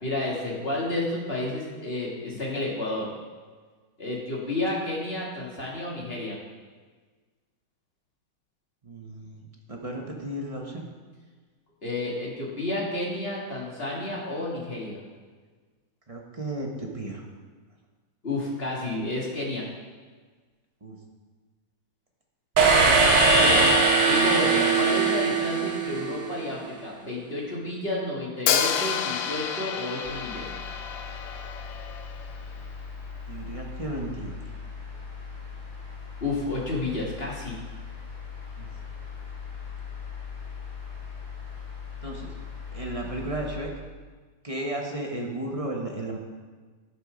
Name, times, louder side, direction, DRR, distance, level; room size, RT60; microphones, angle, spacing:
voice 1, 0.0-3.1 4.0-6.4 11.8-15.0 18.2-19.7 23.4-23.7 24.1-30.5 36.2-37.5, left 2 dB, 30° left, -4 dB, 2.1 m, -31 dB
voice 2, 8.8-10.8 16.1-17.2 20.8-21.0 23.2-23.4 33.3-34.4 38.6-38.7 42.0-42.3 42.7-43.7 44.4-46.2, right 1 dB, 25° right, 0 dB, 0.8 m, -34 dB
sound 1, 22.6-26.4, right 3 dB, 60° right, 1.7 m, -20 dB
Hi-hat, 28.5-32.4, left 8 dB, 75° left, 1.4 m, -29 dB
sound 2, 30.0-43.6, left 5 dB, 50° left, 3.7 m, -39 dB
11.5 x 6.7 x 5.1 m, 1.4 s
omnidirectional pair, 2.3 m